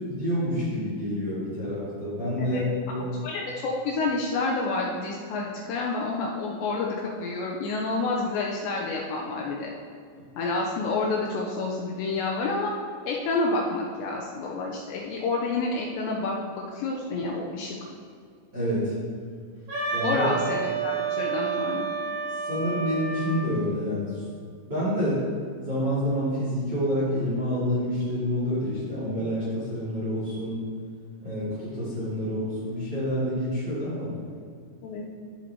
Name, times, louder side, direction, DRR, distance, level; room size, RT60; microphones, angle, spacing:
voice 1, 0.0-2.6 2.9-3.1 18.5-18.9 19.9-20.2 22.4-24.1 24.7-25.2 25.6-30.6 31.2-34.1, equal, 35° right, -9 dB, 1.9 m, -28 dB
voice 2, 3.2-9.7 10.4-12.7 13.1-17.8 20.0-21.9 34.8-35.1, left 3 dB, 85° left, -2 dB, 2.7 m, -29 dB
Wind instrument woodwind instrument, 19.7-23.5, right 5 dB, 50° right, 4.0 m, -30 dB
13.5 x 7.5 x 2.9 m, 2.2 s
omnidirectional pair, 5.6 m